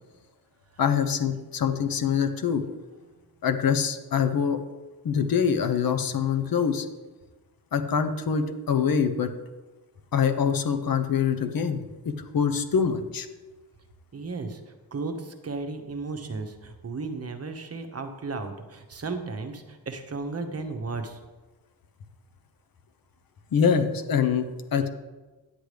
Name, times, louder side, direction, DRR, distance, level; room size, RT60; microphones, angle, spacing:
voice 1, 0.8-2.6 3.4-4.6 5.0-6.9 7.7-9.3 10.1-11.8 12.0-13.3 23.5-24.9, left 7 dB, 55° left, 8 dB, 0.8 m, -24 dB
voice 2, 14.1-14.6 14.9-21.2, right 3 dB, 35° right, 6 dB, 1.0 m, -34 dB
9.9 x 7.9 x 3.3 m, 1.2 s
cardioid pair, 95°, 42 cm